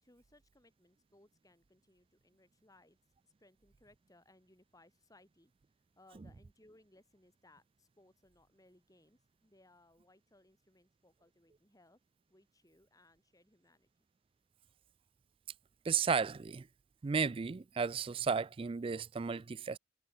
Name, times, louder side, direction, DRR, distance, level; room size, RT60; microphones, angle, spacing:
voice 1, 0.0-3.0 3.2-5.5 6.0-12.0 12.3-13.9, left 1 dB, 15° left, 3.1 m, -66 dB
voice 2, 15.8-16.7 17.0-19.8, right 5 dB, 25° right, 0.3 m, -34 dB
head